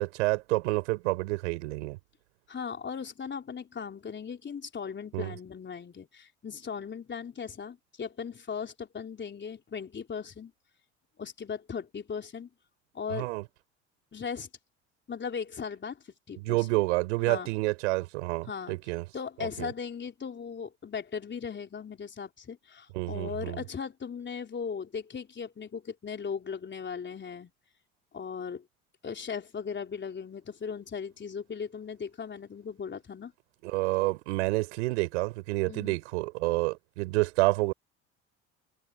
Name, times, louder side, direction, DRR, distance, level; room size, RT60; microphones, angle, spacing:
voice 1, 0.0-2.0 5.1-5.3 13.1-13.4 16.4-19.0 19.4-19.7 22.9-23.6 33.6-37.7, right 23 dB, 80° right, 4.4 m, -29 dB
voice 2, 2.5-10.5 11.2-12.5 12.9-13.3 14.1-14.5 15.1-16.8 17.3-17.5 18.5-18.8 19.1-27.5 28.1-28.6 29.0-33.3 35.7-36.0, left 6 dB, 30° left, 3.7 m, -38 dB
hypercardioid pair, 70°, 35 cm